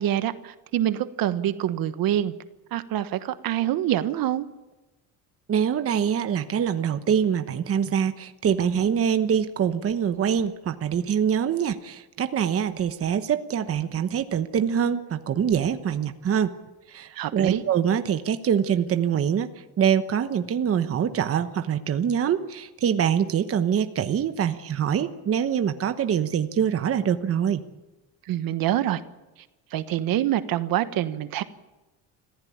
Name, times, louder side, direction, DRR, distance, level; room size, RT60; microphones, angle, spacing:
voice 1, 0.0-2.3 2.7-4.5 17.1-17.6 28.3-29.0 29.7-31.4, right 12 dB, 65° right, 11 dB, 1.3 m, -25 dB
voice 2, 5.5-16.5 16.9-19.5 19.8-27.6, right 8 dB, 35° right, 9 dB, 1.1 m, -24 dB
26.0 x 15.0 x 8.7 m, 1.1 s
cardioid pair, 140°, 38 cm